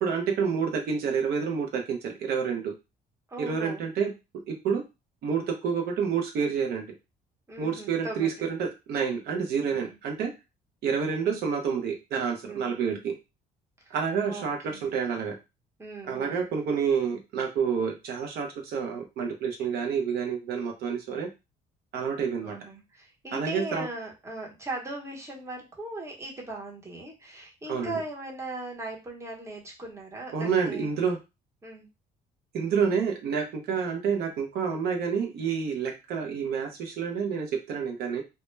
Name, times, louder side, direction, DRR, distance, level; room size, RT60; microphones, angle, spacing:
voice 1, 0.0-2.7 3.4-4.1 4.5-4.8 5.2-6.9 7.6-10.3 10.8-13.2 13.9-15.4 16.0-21.3 21.9-22.6 23.3-23.9 27.7-28.0 30.3-31.2 32.5-38.2, right 6 dB, 70° right, 3 dB, 0.6 m, -28 dB
voice 2, 3.3-3.8 7.5-8.3 9.7-10.0 12.4-12.8 13.8-13.9 14.3-14.9 15.8-16.5 22.4-30.9 31.6-31.9, right 2 dB, 15° right, -1 dB, 0.8 m, -39 dB
2.1 x 2.1 x 3.0 m, 0.26 s
cardioid pair, 110°, 17 cm